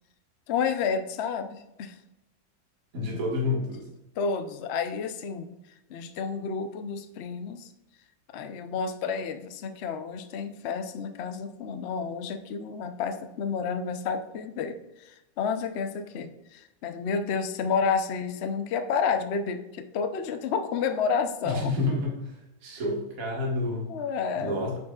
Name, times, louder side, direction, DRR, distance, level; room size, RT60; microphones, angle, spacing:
voice 1, 0.5-2.0 4.2-5.6 5.9-7.7 8.3-21.7 23.9-24.6, left 6 dB, 70° left, 8 dB, 0.6 m, -30 dB
voice 2, 2.9-3.9 21.4-22.3 22.6-23.9 24.3-24.8, left 2 dB, 45° right, -2 dB, 2.1 m, -29 dB
9.2 x 6.9 x 2.4 m, 0.96 s
omnidirectional pair, 2.0 m